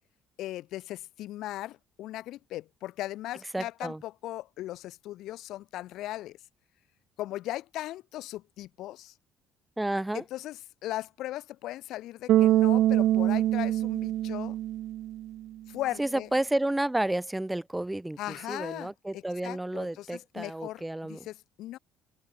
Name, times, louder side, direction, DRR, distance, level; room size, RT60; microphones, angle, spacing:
voice 1, 0.4-6.4 7.2-9.1 10.1-14.6 15.7-16.3 18.2-21.8, left 15 dB, 70° left, 0.9 m, -38 dB
voice 2, 3.5-4.0 9.8-10.2 16.0-21.2, right 1 dB, 10° right, 1.9 m, -31 dB
Bass guitar, 12.3-15.4, right 13 dB, 65° right, 0.5 m, -24 dB
open air
cardioid pair, 105°, 0 cm